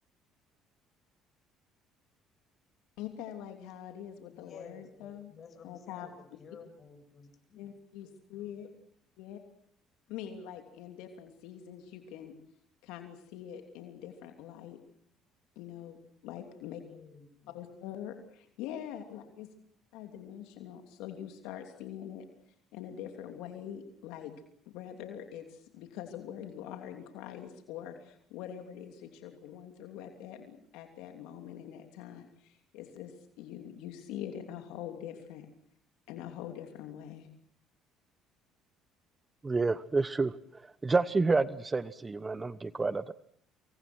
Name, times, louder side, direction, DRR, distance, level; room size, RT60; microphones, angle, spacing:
voice 1, 3.0-5.3 5.6-6.1 7.6-8.7 9.2-9.4 10.1-12.3 12.8-14.8 15.5-16.0 16.2-16.8 17.5-19.5 19.9-22.2 22.7-24.3 24.7-35.5 36.1-37.3, left 10 dB, 80° left, 5 dB, 3.0 m, -44 dB
voice 2, 4.3-7.7 16.8-17.6, left 5 dB, 45° left, 7 dB, 7.6 m, -53 dB
voice 3, 39.4-43.1, right 3 dB, 25° right, 16 dB, 1.1 m, -29 dB
27.0 x 23.5 x 6.3 m, 0.65 s
supercardioid pair, 80°, 0 cm